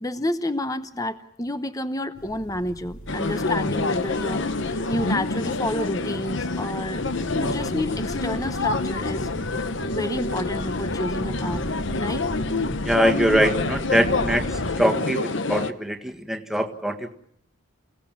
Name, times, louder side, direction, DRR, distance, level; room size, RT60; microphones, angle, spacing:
voice 1, 0.0-7.0 7.3-9.3 9.9-11.6 12.0-12.3, left 1 dB, 15° left, 10 dB, 0.9 m, -30 dB
sound 1, 2.1-14.7, equal, 75° left, 7.4 m, -37 dB
sound 2, 3.1-15.7, left 3 dB, 60° left, 1.0 m, -27 dB
voice 2, 12.8-14.5 14.8-17.1, right 1 dB, ahead, 4 dB, 1.6 m, -23 dB
29.5 x 17.5 x 7.3 m, 0.71 s
head